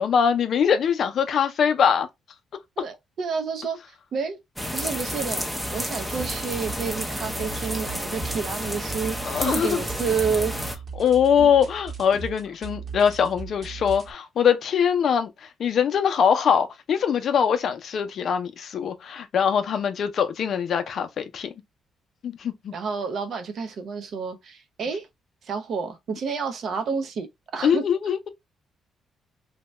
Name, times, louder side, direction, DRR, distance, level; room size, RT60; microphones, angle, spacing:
voice 1, 0.0-2.1 9.2-9.8 11.0-21.5 22.2-22.7 27.6-28.3, left 7 dB, 60° left, 0.5 m, -22 dB
voice 2, 2.8-4.4 4.7-5.5 5.7-10.5 11.4-11.5 22.7-25.1 25.4-27.3 27.5-27.8, right 5 dB, 60° right, 0.6 m, -29 dB
sound 1, 4.6-10.8, equal, ahead, 0.6 m, -31 dB
sound 2, 6.1-14.1, right 5 dB, 40° right, 0.9 m, -38 dB
2.7 x 2.2 x 3.0 m
cardioid pair, 90°, 0 cm